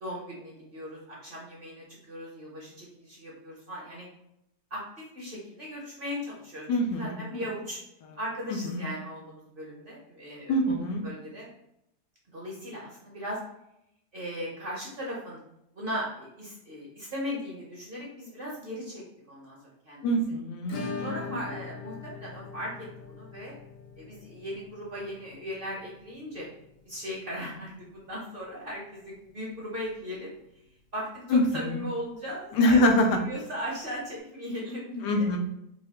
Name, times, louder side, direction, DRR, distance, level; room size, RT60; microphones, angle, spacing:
voice 1, 0.0-4.1 4.7-4.8 5.1-7.8 8.1-11.5 12.3-13.4 14.1-15.4 15.7-19.6 19.8-20.2 21.0-23.5 24.0-26.5 26.8-30.3 30.9-35.3, equal, 45° right, -4 dB, 0.8 m, -38 dB
voice 2, 6.7-7.4 8.8-8.9 10.5-11.0 20.0-21.4 31.3-31.7 32.6-33.2 35.0-35.4, left 1 dB, 90° left, 3 dB, 1.3 m, -24 dB
Acoustic guitar / Strum, 20.7-29.3 29.5-29.6 29.9-30.0 30.4-30.5 32.5-32.6 33.8-33.9, left 4 dB, 60° left, 1.0 m, -43 dB
4.5 x 2.3 x 2.9 m, 0.80 s
omnidirectional pair, 1.8 m